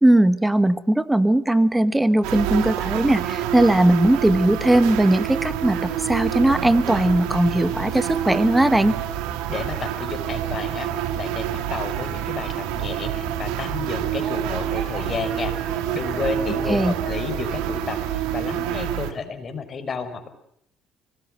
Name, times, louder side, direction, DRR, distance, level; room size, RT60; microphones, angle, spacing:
voice 1, 0.0-8.9 16.7-16.9, right 1 dB, 10° right, 13 dB, 1.7 m, -19 dB
sound 1, 2.0-19.0, right 7 dB, 60° right, 6.3 m, -39 dB
sound 2, 2.2-19.1, right 10 dB, 85° right, 2.4 m, -28 dB
voice 2, 9.5-20.3, left 5 dB, 40° left, 9 dB, 5.3 m, -32 dB
25.0 x 19.5 x 7.9 m, 0.74 s
supercardioid pair, 75°, 0 cm